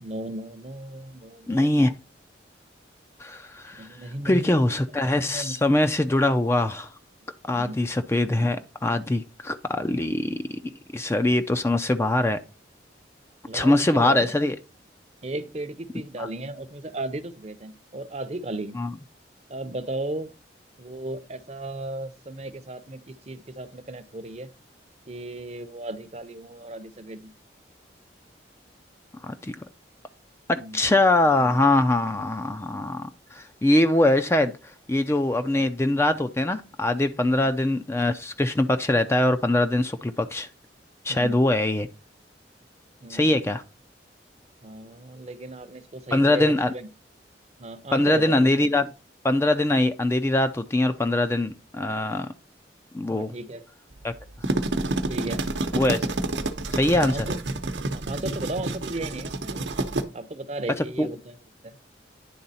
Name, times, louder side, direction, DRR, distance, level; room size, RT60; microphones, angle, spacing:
voice 1, 0.0-1.9 3.7-5.8 7.5-7.8 9.9-10.1 13.4-14.3 15.2-18.8 19.5-20.3 20.8-24.5 25.1-27.3 30.6-30.8 35.5-35.6 37.3-37.5 41.1-41.4 43.0-43.5 44.6-46.9 47.6-48.7 53.1-53.6 54.7-55.5 57.0-57.4 57.9-59.7 60.1-61.4 61.6-61.7, right 1 dB, 35° right, 0.7 m, -36 dB
voice 2, 1.5-1.9 3.2-6.9 7.5-10.6 10.9-12.4 13.5-14.6 16.2-16.3 18.7-18.9 29.3-29.5 30.5-34.5 34.9-40.5 41.0-41.9 43.1-43.6 46.1-46.7 47.9-48.9 49.2-52.3 52.9-53.3 54.0-54.1 55.7-56.0 56.7-57.2 61.0-61.1, left 1 dB, 15° left, 0.4 m, -22 dB
sound 1, 54.2-60.0, right 2 dB, 85° right, 0.9 m, -28 dB
10.0 x 3.8 x 4.1 m
head